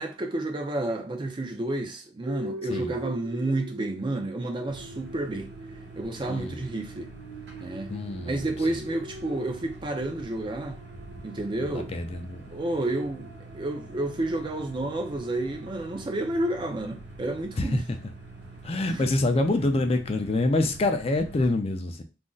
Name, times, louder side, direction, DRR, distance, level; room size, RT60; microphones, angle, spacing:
voice 1, 0.0-5.5 6.0-7.1 7.6-7.9 8.2-10.8 11.2-11.9 12.5-17.8 18.9-19.1, right 2 dB, 30° right, 0.4 m, -30 dB
sound 1, 2.3-16.5, right 1 dB, 90° right, 0.4 m, -43 dB
sound 2, 4.7-21.5, right 2 dB, 70° right, 0.9 m, -45 dB
voice 2, 6.3-6.6 7.9-8.8 11.6-12.5 17.6-17.8 18.6-22.0, left 2 dB, 35° left, 0.4 m, -26 dB
2.5 x 2.1 x 3.7 m
head